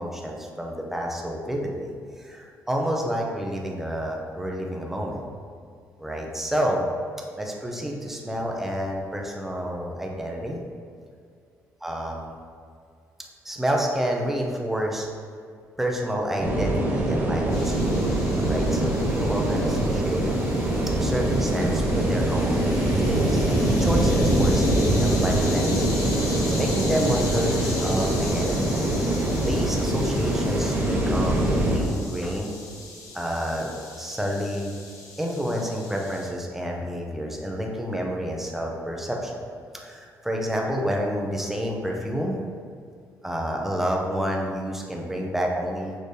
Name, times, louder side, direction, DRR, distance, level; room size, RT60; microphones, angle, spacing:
voice 1, 0.0-5.2 6.0-6.8 7.4-10.6 11.8-12.3 13.4-15.1 15.8-18.0 18.5-20.3 21.0-25.9 26.3-28.6 29.4-32.5 33.1-33.7 34.0-34.7 35.2-39.4 39.7-42.4 43.2-45.9, equal, 5° right, -1 dB, 0.8 m, -29 dB
sound 1, 16.4-31.8, right 1 dB, 30° right, 1.1 m, -23 dB
sound 2, 17.5-36.3, left 3 dB, 65° left, 1.1 m, -39 dB
6.7 x 5.0 x 3.3 m, 2.3 s
cardioid pair, 135°, 6 cm